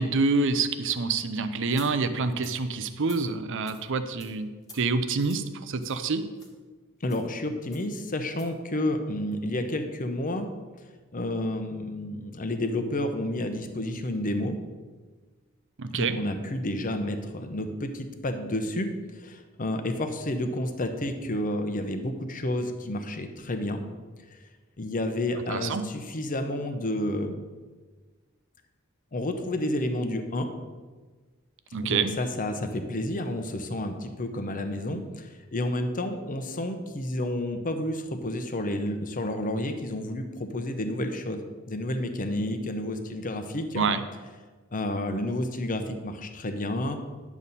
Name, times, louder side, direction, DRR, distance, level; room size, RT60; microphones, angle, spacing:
voice 1, 0.0-4.5 4.7-6.2 15.8-16.2 25.5-25.8 31.7-32.1 43.8-44.0, right 4 dB, 60° right, 11 dB, 0.6 m, -27 dB
sound 1, 1.7-1.9 2.4-2.6 3.0-3.2 3.7-3.8 4.2-4.3 4.6-4.8 5.2-5.4 5.8-6.0 6.4-6.5 7.0-7.3 7.7-7.9 8.3-8.5, left 3 dB, 15° left, 1.4 m, -49 dB
voice 2, 7.0-10.5 11.1-14.6 15.9-23.8 24.8-27.4 29.1-30.5 31.8-43.9 44.7-47.0, left 1 dB, 40° left, 7 dB, 0.8 m, -30 dB
10.5 x 7.1 x 4.1 m, 1.4 s
head